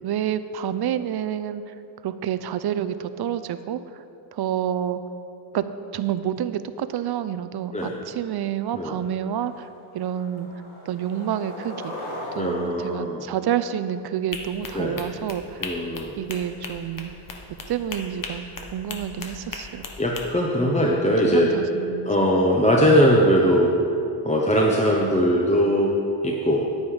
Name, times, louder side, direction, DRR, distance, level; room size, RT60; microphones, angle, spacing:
voice 1, 0.0-1.6 2.0-3.8 4.3-5.0 5.5-5.7 5.9-9.7 9.9-10.5 10.9-11.9 12.4-15.6 16.2-17.1 17.7-18.5 18.7-19.9 21.2-22.4, right 10 dB, 55° right, 12 dB, 0.6 m, -28 dB
Skateboard, 8.3-8.4 8.8-9.1 9.4-14.1, left 1 dB, 90° left, 2.2 m, -39 dB
voice 2, 12.3-13.2 14.7-15.0 15.6-16.1 19.2-19.3 20.0-21.5 22.0-23.8 24.2-25.9 26.2-26.7, equal, 15° left, -2 dB, 0.8 m, -20 dB
sound 1, 14.3-20.2, left 4 dB, 40° left, 1.2 m, -37 dB
9.7 x 9.4 x 4.9 m, 2.7 s
cardioid pair, 125°, 48 cm